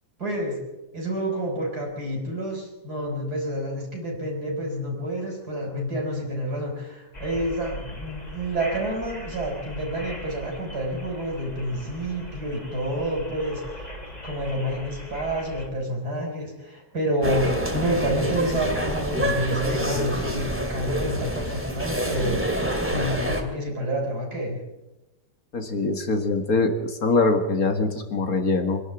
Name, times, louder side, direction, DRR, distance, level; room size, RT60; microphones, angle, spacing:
voice 1, 0.2-0.6 0.9-13.8 14.2-24.6, right 1 dB, 65° right, 0 dB, 5.7 m, -28 dB
sound 1, 7.1-15.7, equal, 25° left, 3.3 m, -39 dB
sound 2, 17.2-23.4, equal, 5° right, 2.2 m, -27 dB
voice 2, 25.5-28.8, left 3 dB, 55° left, 6 dB, 2.4 m, -23 dB
24.5 x 11.5 x 9.2 m, 1.0 s
omnidirectional pair, 1.8 m